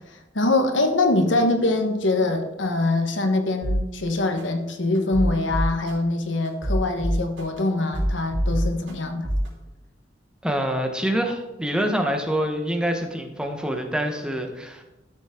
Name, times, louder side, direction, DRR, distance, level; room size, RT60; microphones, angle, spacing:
voice 1, 0.0-9.3, left 2 dB, 70° left, 5 dB, 1.2 m, -23 dB
sound 1, 3.6-3.8 4.4-4.5 5.0-5.9 6.5-7.6 7.9-8.9 9.2-9.5, equal, 75° right, 3.4 m, -24 dB
voice 2, 10.4-14.8, equal, 5° right, 3 dB, 0.9 m, -26 dB
12.5 x 7.0 x 3.7 m, 0.99 s
head